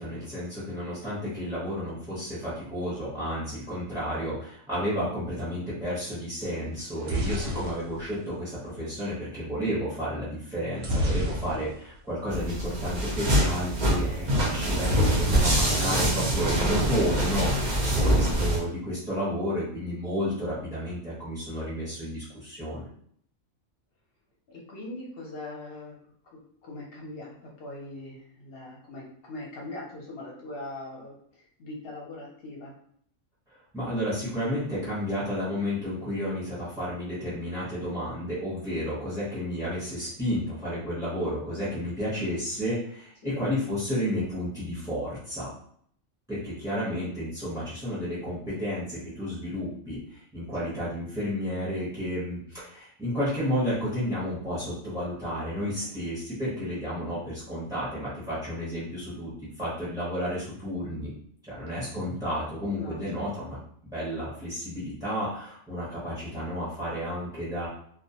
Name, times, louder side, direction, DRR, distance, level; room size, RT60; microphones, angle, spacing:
voice 1, 0.0-11.7 12.1-17.5 17.9-22.9 33.7-45.5 46.3-61.1 61.5-67.7, equal, 5° right, -10 dB, 0.5 m, -32 dB
sound 1, 6.8-8.9 10.8-12.0 12.3-12.4 12.6-12.9 14.8-16.0 16.3-16.9, equal, 90° right, 1.0 m, -30 dB
sound 2, 12.3-18.6, right 1 dB, 55° right, 0.5 m, -25 dB
voice 2, 17.4-18.0 24.5-26.0 26.3-32.7 43.2-43.3 50.6-50.7 55.8-56.0 62.7-63.3, left 2 dB, 60° left, -2 dB, 0.7 m, -41 dB
2.2 x 2.1 x 2.7 m, 0.64 s
omnidirectional pair, 1.3 m